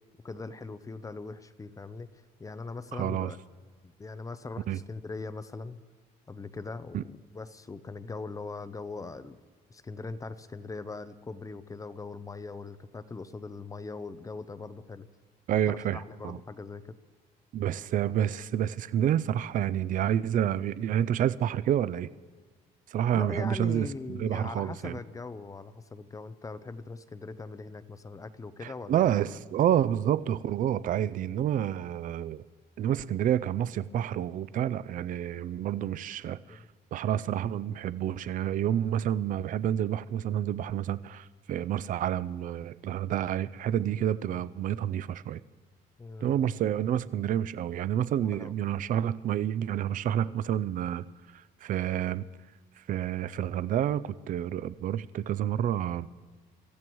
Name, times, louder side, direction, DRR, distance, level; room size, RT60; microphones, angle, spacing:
voice 1, 0.2-2.1 2.4-3.4 3.8-5.8 6.3-9.4 9.7-15.1 15.5-16.9 23.1-29.2 36.5-36.6 46.0-46.4 48.2-48.5 50.2-50.4, left 3 dB, 20° left, 0.6 m, -41 dB
voice 2, 2.9-3.3 4.7-4.8 6.9-7.0 15.5-16.4 17.5-22.1 22.9-25.0 28.6-32.4 32.8-36.6 36.9-45.4 46.2-51.1 51.3-52.3 52.8-56.1, right 10 dB, 50° right, 0.5 m, -29 dB
25.0 x 14.0 x 3.1 m
cardioid pair, 110°, 17 cm